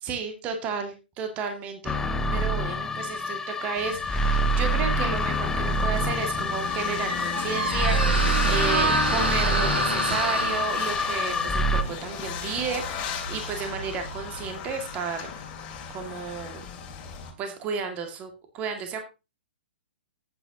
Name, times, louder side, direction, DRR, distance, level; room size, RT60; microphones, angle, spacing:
voice 1, 0.0-2.0 2.3-15.3 15.9-16.6 17.4-19.0, right 5 dB, 25° right, 5 dB, 2.1 m, -33 dB
sound 1, 1.8-11.8, equal, 10° left, 0.7 m, -26 dB
sound 2, 3.8-17.3, left 7 dB, 25° left, 2.6 m, -37 dB
Squeak, 6.2-15.0, right 2 dB, 80° right, 4.4 m, -30 dB
13.5 x 9.0 x 2.9 m, 0.28 s
figure-of-eight pair, 120°, 6 cm